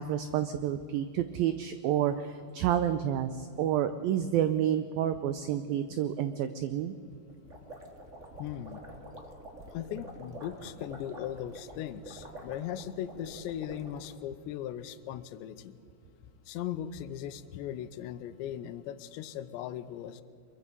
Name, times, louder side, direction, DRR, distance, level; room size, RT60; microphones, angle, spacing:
voice 1, 0.0-6.9, right 10 dB, 90° right, 11 dB, 2.0 m, -29 dB
sound 1, 7.3-14.1, right 1 dB, 25° right, 1.6 m, -47 dB
voice 2, 8.4-8.8 9.7-15.8 16.5-20.2, left 10 dB, 85° left, 12 dB, 3.0 m, -38 dB
24.5 x 22.5 x 5.4 m, 2.5 s
omnidirectional pair, 5.1 m